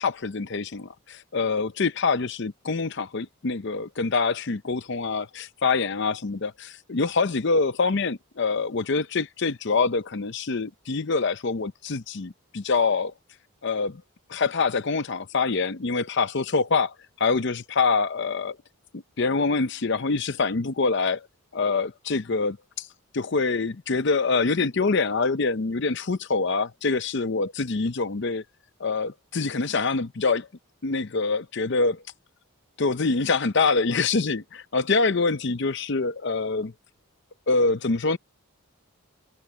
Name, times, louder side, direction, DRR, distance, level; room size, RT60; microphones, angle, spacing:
voice 1, 0.0-13.1 13.6-14.0 14.3-18.6 18.9-21.3 21.5-22.9 23.1-28.4 28.8-30.5 30.8-32.0 32.8-36.7 37.5-38.2, left 4 dB, 55° left, 0.6 m, -25 dB
head